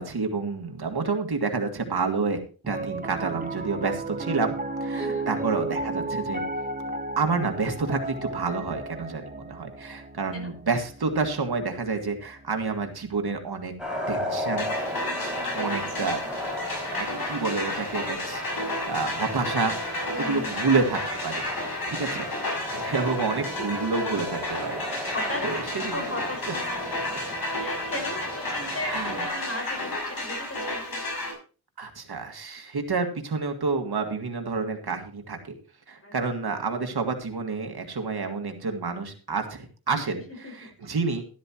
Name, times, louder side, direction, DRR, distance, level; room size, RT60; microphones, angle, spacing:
voice 1, 0.0-2.4 2.7-4.5 4.8-6.4 7.2-13.7 14.1-14.7 15.6-16.2 16.9-22.3 22.7-25.1 25.4-26.6 28.9-29.3 31.8-35.5 35.9-41.2, right 4 dB, 75° right, 5 dB, 2.0 m, -29 dB
Piano, 2.6-13.0, right 2 dB, 20° right, 1.2 m, -34 dB
voice 2, 4.9-5.3 10.3-10.5 16.2-16.3 20.1-20.5 22.0-22.1 25.1-25.4 25.9-27.2 27.5-31.1 36.0-36.1 40.4-40.5, left 1 dB, 35° left, 3 dB, 5.4 m, -37 dB
sound 1, 13.8-29.3, equal, ahead, 6.0 m, -36 dB
sound 2, 14.6-31.3, left 1 dB, 65° left, 5.8 m, -32 dB
12.5 x 12.5 x 3.0 m, 0.36 s
wide cardioid pair, 65°, 39 cm